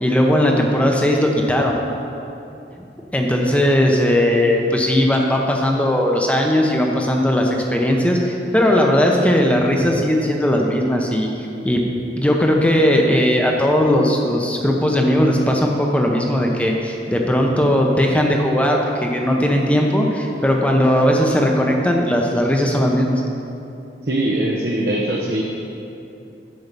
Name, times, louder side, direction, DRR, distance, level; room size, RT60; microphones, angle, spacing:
voice 1, 0.0-1.8 2.8-2.9 3.1-11.3 11.6-11.8 12.1-23.2, equal, 10° left, 1 dB, 0.7 m, -18 dB
voice 2, 24.1-25.4, right 1 dB, 60° right, -3 dB, 0.8 m, -21 dB
10.5 x 4.7 x 6.8 m, 2.8 s
head